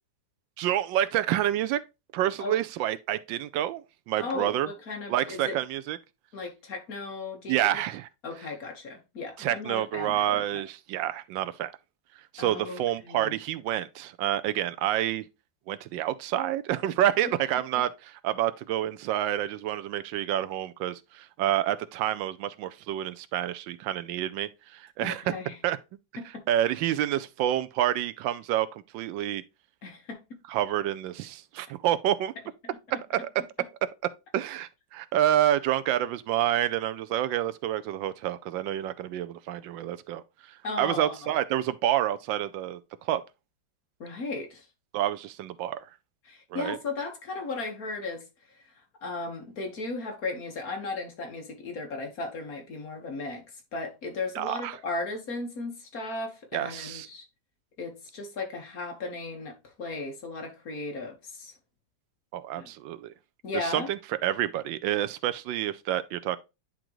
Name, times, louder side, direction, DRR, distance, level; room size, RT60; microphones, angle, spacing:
voice 1, 0.6-1.8 2.1-4.7 5.1-6.0 7.5-8.1 9.4-11.7 12.3-15.2 15.7-25.3 25.6-25.8 26.5-29.4 30.5-32.3 33.1-33.3 34.3-43.2 44.9-45.9 46.5-46.8 54.3-54.8 56.5-57.1 62.3-63.1 63.5-66.4, right 12 dB, 85° right, 1.3 m, -28 dB
voice 2, 4.2-5.6 6.3-7.8 8.2-10.6 12.4-13.4 17.2-17.3 25.0-25.6 26.2-26.4 29.8-30.4 33.6-33.7 40.6-41.3 44.0-44.7 46.2-48.3 49.0-53.4 53.7-57.2 57.8-61.5 62.6-62.7 63.4-63.9, left 3 dB, 50° left, 1.8 m, -36 dB
10.0 x 3.8 x 3.0 m
omnidirectional pair, 2.0 m